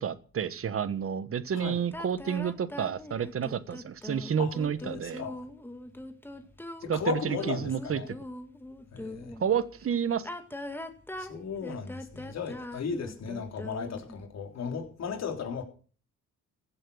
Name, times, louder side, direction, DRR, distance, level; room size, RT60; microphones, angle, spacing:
voice 1, 0.0-5.2 6.9-8.1 9.4-10.3, right 8 dB, 45° right, 1.4 m, -30 dB
sound 1, 1.9-9.4 10.1-14.2, left 1 dB, 5° left, 1.9 m, -41 dB
voice 2, 4.4-5.4 6.8-8.1 8.9-9.3 11.2-15.6, left 6 dB, 60° left, 3.7 m, -36 dB
15.5 x 7.7 x 6.4 m
cardioid pair, 90°, 30 cm